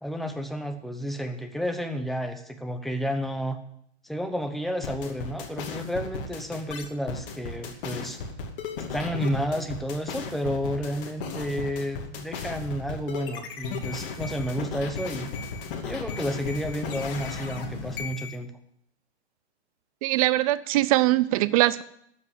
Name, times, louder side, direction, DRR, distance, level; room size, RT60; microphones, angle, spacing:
voice 1, 0.0-3.6 4.0-8.2 8.9-15.3 15.8-18.5, equal, ahead, 7 dB, 0.8 m, -31 dB
sound 1, 4.8-18.4, left 5 dB, 50° left, 2.4 m, -35 dB
voice 2, 20.0-21.8, right 17 dB, 30° right, 16 dB, 0.6 m, -22 dB
12.5 x 7.5 x 8.3 m, 0.70 s
hypercardioid pair, 140°, 34 cm